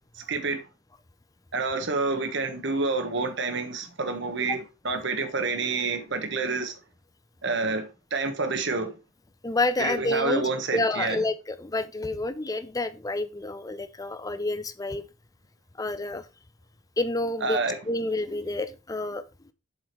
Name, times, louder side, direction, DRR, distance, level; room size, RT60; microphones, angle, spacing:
voice 1, 0.3-0.6 1.5-4.6 4.8-6.7 7.4-8.9 9.8-11.2 17.4-17.8, right 3 dB, 60° right, 1.4 m, -28 dB
voice 2, 9.4-15.0 15.8-16.2 17.0-19.2, left 2 dB, 20° left, 0.6 m, -29 dB
7.3 x 5.0 x 4.7 m
head